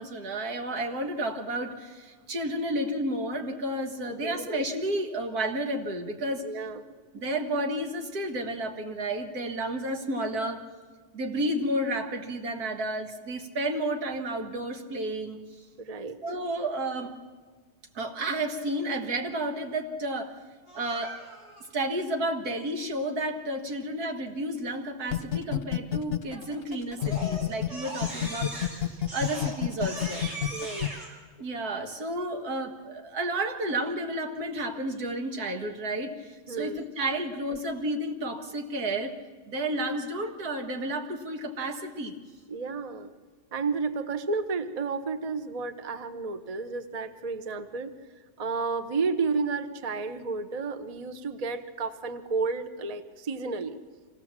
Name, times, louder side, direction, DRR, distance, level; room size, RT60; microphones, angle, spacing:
voice 1, 0.0-6.4 7.1-10.6 11.1-15.4 16.2-17.2 17.9-20.3 20.7-21.2 21.7-30.3 31.4-39.1 39.5-42.1, right 1 dB, 90° right, 5 dB, 2.1 m, -31 dB
voice 2, 4.1-4.4 6.4-6.8 15.8-16.2 30.5-31.0 36.5-36.8 42.5-43.1 43.5-47.9 48.4-53.8, right 4 dB, 30° right, 10 dB, 0.8 m, -32 dB
Crying sobbing, 20.7-21.6 26.3-26.6 27.0-31.1, equal, 55° right, 5.3 m, -39 dB
sound 1, 25.1-27.7 28.0-30.9, left 12 dB, 45° left, 1.0 m, -28 dB
25.5 x 17.0 x 7.4 m, 1.5 s
omnidirectional pair, 1.6 m